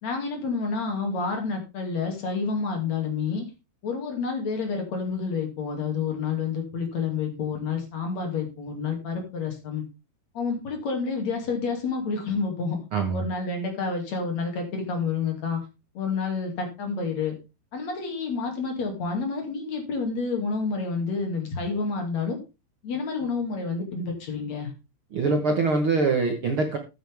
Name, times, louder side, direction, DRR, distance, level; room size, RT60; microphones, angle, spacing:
voice 1, 0.0-3.5 3.8-9.8 10.4-12.8 13.1-15.6 16.0-17.4 17.7-22.4 22.8-24.7, left 4 dB, 45° left, 3 dB, 3.5 m, -29 dB
voice 2, 12.9-13.2 25.1-26.8, right 3 dB, 85° right, 3 dB, 1.1 m, -23 dB
14.0 x 8.7 x 3.5 m, 0.28 s
omnidirectional pair, 4.7 m